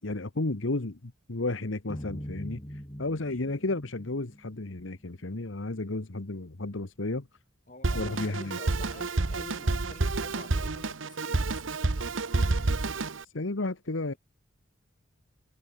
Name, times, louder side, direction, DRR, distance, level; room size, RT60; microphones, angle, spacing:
voice 1, 0.0-7.3 7.9-8.6 13.2-14.1, left 2 dB, 75° left, 1.3 m, -33 dB
sound 1, 1.9-5.1, equal, 20° left, 5.6 m, -42 dB
voice 2, 7.7-12.2, left 1 dB, 40° left, 7.4 m, -49 dB
Drum kit, 7.8-13.2, right 3 dB, 80° right, 1.1 m, -29 dB
head